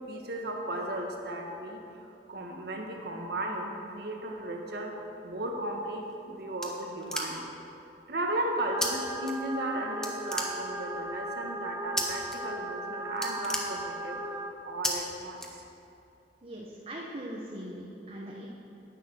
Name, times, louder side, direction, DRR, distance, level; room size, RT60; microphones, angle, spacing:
voice 1, 0.1-5.0 5.2-7.6 8.1-15.6, right 1 dB, 65° right, 1 dB, 1.6 m, -35 dB
sound 1, 5.9-7.6 8.8-8.9 9.2-9.7 10.0-11.0 12.0-12.4 12.7-12.8 13.1-14.3 14.8-14.9 15.4-16.0, equal, 5° left, 1.2 m, -34 dB
sound 2, 8.7-14.5, right 1 dB, 15° right, 0.5 m, -37 dB
voice 2, 16.4-18.5, right 1 dB, 35° right, -3 dB, 1.1 m, -40 dB
10.5 x 9.5 x 6.3 m, 2.8 s
head